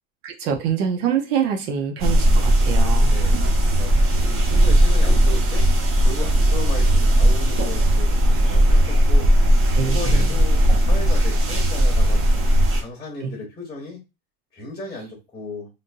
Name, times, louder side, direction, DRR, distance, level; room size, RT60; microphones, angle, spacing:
voice 1, 0.2-3.2 9.7-10.4 13.2-13.4, right 7 dB, 75° right, 1.0 m, -25 dB
sound 1, 2.0-12.8, right 1 dB, 30° right, 0.8 m, -17 dB
voice 2, 3.0-3.4 3.7-3.9 4.3-5.6 6.0-9.3 9.8-12.4 12.8-14.0 14.5-15.7, left 2 dB, 10° left, 0.9 m, -35 dB
3.5 x 2.7 x 2.6 m
supercardioid pair, 135°, 46 cm